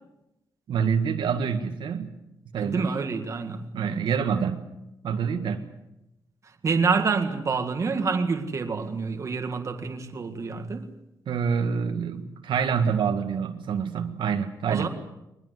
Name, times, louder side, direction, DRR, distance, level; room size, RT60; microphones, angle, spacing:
voice 1, 0.7-2.1 2.5-2.9 3.7-4.7 5.0-5.7 11.3-14.9, right 6 dB, 85° right, 1.8 m, -26 dB
voice 2, 2.6-3.9 6.6-10.9 14.7-14.9, right 4 dB, 40° right, 1.9 m, -27 dB
22.5 x 21.0 x 8.1 m
wide cardioid pair, 165°, 8 cm